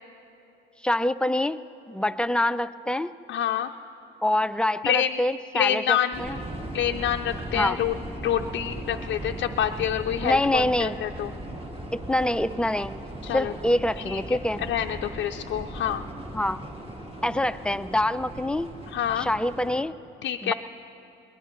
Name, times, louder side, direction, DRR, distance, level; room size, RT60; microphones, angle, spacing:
voice 1, 0.8-1.6 1.9-3.1 4.2-6.4 7.6-7.8 10.2-11.0 11.9-13.0 13.3-14.6 16.3-16.6 17.2-18.7 19.2-19.9 20.4-20.5, left 1 dB, 5° left, 12 dB, 0.4 m, -25 dB
voice 2, 3.3-3.7 4.8-5.2 5.5-6.2 6.7-11.3 13.2-13.5 14.1-14.2 14.7-16.0 18.9-19.3 20.2-20.5, left 10 dB, 70° left, 4 dB, 0.5 m, -27 dB
sound 1, 6.1-19.8, right 1 dB, 30° right, 1.6 m, -38 dB
22.0 x 20.5 x 3.0 m, 2.9 s
cardioid pair, 90°, 20 cm